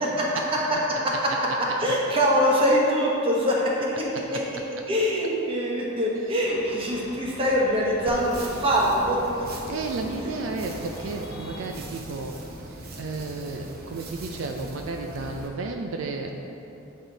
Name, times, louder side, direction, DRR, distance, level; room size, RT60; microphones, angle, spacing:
voice 1, 0.2-0.6 0.9-1.1 1.8-4.4 4.9-9.2, equal, 25° right, -4 dB, 1.1 m, -23 dB
sound 1, 6.4-11.6, left 1 dB, 50° left, 0.9 m, -43 dB
sound 2, 8.1-15.5, right 1 dB, 50° right, 0.8 m, -41 dB
voice 2, 9.7-12.4 12.6-16.3, right 3 dB, 70° right, 3 dB, 0.4 m, -33 dB
7.9 x 4.3 x 4.0 m, 3.0 s
head